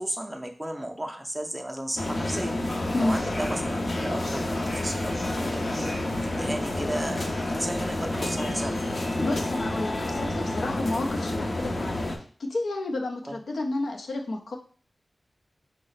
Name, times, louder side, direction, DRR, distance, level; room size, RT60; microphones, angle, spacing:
voice 1, 0.0-2.5 3.0-5.9 6.2-8.8 13.3-13.4, right 1 dB, 10° right, 3 dB, 0.5 m, -34 dB
sound 1, 2.0-12.2, left 1 dB, 45° left, 0.6 m, -29 dB
voice 2, 9.2-12.1 12.4-14.6, left 2 dB, 90° left, 2 dB, 0.6 m, -30 dB
4.1 x 2.1 x 3.9 m, 0.42 s
wide cardioid pair, 95°, 0 cm